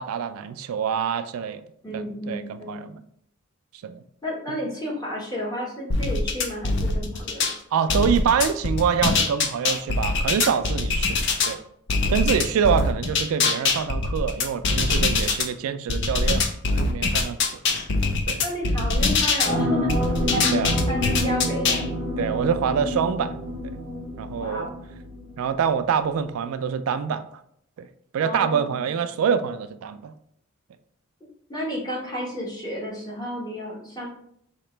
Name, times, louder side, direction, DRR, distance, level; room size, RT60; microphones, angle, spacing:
voice 1, 0.0-1.6 1.9-3.0 3.8-4.0 4.5-4.6 7.7-11.2 11.5-11.6 12.1-16.4 16.7-17.4 18.3-18.4 20.5-20.7 22.2-23.4 24.2-24.7 25.4-27.3 27.8-27.9 28.1-30.1, right 7 dB, 75° right, 12 dB, 0.3 m, -25 dB
voice 2, 1.8-2.8 4.2-7.5 7.8-8.0 18.4-20.0 20.3-20.5 20.9-21.9 24.4-24.8 28.2-28.9 31.5-34.1, equal, 20° left, -4 dB, 1.1 m, -32 dB
sound 1, 5.9-7.5 7.9-11.5 11.9-15.4 15.9-19.5 19.9-21.8, left 3 dB, 55° left, 0.5 m, -23 dB
sound 2, 19.4-25.5 25.9-26.0, left 1 dB, 20° right, 0.8 m, -28 dB
5.0 x 2.9 x 3.2 m, 0.72 s
head